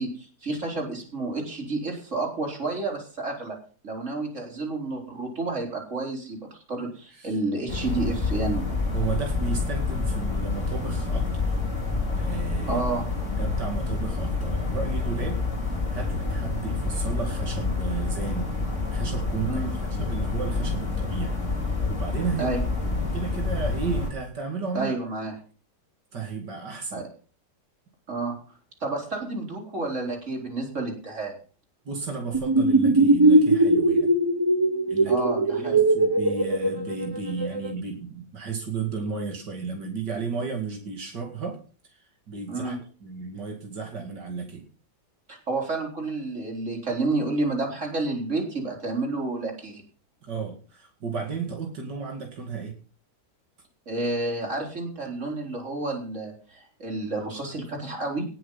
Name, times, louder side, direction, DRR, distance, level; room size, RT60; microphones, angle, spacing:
voice 1, 0.0-3.6 3.8-8.6 12.7-13.1 19.4-19.7 22.4-22.6 24.7-25.3 26.9-27.0 28.1-28.3 28.8-31.3 35.1-35.8 42.5-42.8 45.3-49.8 53.9-58.2, right 2 dB, 45° right, 0 dB, 4.5 m, -30 dB
sound 1, 7.7-24.1, left 3 dB, 45° left, 4.2 m, -28 dB
voice 2, 8.9-11.6 12.1-12.8 13.4-15.4 15.9-18.5 18.9-21.3 21.9-22.5 22.9-24.9 26.1-27.1 31.8-34.2 34.9-35.1 35.6-44.7 50.2-52.7, right 5 dB, 85° right, 2 dB, 2.9 m, -33 dB
sound 2, 32.3-37.7, right 2 dB, 20° right, 0.6 m, -20 dB
18.5 x 7.7 x 5.6 m, 0.39 s
omnidirectional pair, 1.8 m